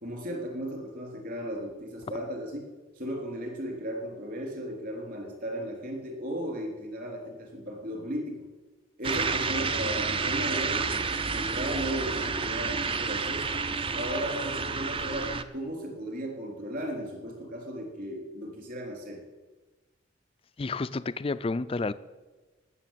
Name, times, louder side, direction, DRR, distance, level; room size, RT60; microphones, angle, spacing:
voice 1, 0.0-2.6 3.0-8.4 9.0-13.5 13.9-19.2, equal, 45° right, 1 dB, 3.8 m, -35 dB
sound 1, 9.0-15.4, right 4 dB, 25° right, 0.6 m, -30 dB
voice 2, 20.6-21.9, left 3 dB, 30° left, 16 dB, 0.4 m, -30 dB
18.0 x 7.0 x 7.5 m, 1.2 s
head